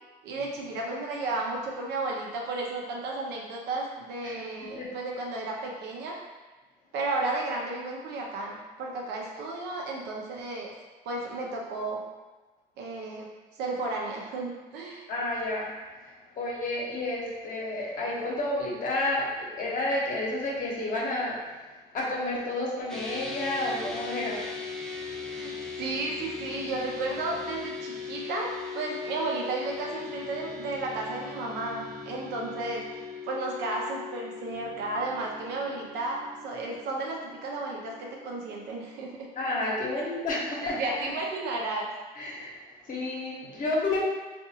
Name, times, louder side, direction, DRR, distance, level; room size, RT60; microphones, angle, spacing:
voice 1, 0.2-6.2 6.9-10.7 11.0-12.0 12.8-13.3 13.5-15.0 25.3-25.5 25.8-39.3 40.0-40.1 40.6-41.9, right 2 dB, 80° right, -1 dB, 0.7 m, -33 dB
voice 2, 15.1-15.7 16.0-21.6 21.9-24.5 39.4-40.8 42.2-42.5 42.9-44.1, left 2 dB, 50° left, -4 dB, 1.0 m, -30 dB
sound 1, 22.9-40.3, left 5 dB, 5° left, 0.5 m, -40 dB
3.7 x 2.5 x 2.8 m, 1.2 s
cardioid pair, 110°, 17 cm